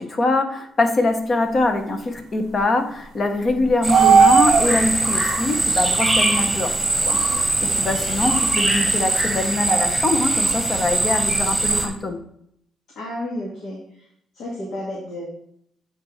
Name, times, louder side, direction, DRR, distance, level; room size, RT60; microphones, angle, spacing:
voice 1, 0.0-6.8 7.0-12.2, left 2 dB, 40° left, 6 dB, 1.1 m, -23 dB
sound 1, 3.4-5.0 7.4-7.5 9.7-10.1 10.4-10.5 10.8-11.7, right 6 dB, 65° right, 0.6 m, -16 dB
voice 2, 3.6-4.0 7.7-8.1 13.0-13.8 14.3-15.3, left 1 dB, 65° left, -5 dB, 2.0 m, -32 dB
sound 2, 3.8-11.9, right 2 dB, 10° right, 1.5 m, -22 dB
8.5 x 4.5 x 3.3 m, 0.72 s
cardioid pair, 90°, 0 cm